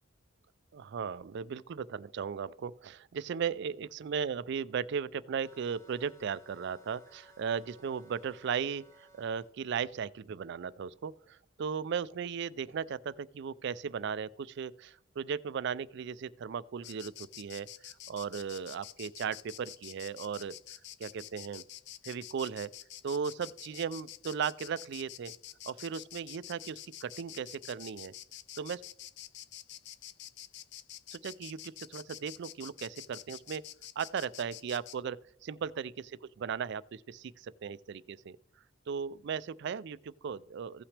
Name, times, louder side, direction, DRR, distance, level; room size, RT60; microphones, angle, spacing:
voice 1, 0.7-17.7 18.1-20.6 21.0-21.6 22.0-22.7 23.0-25.3 25.7-28.1 28.6-28.8 31.1-33.6 34.0-38.4 38.9-40.8, right 7 dB, 55° right, 0.3 m, -37 dB
sound 1, 5.4-9.5, equal, 15° left, 1.0 m, -60 dB
Insect, 16.8-35.0, left 12 dB, 55° left, 0.4 m, -48 dB
15.5 x 5.8 x 3.3 m
head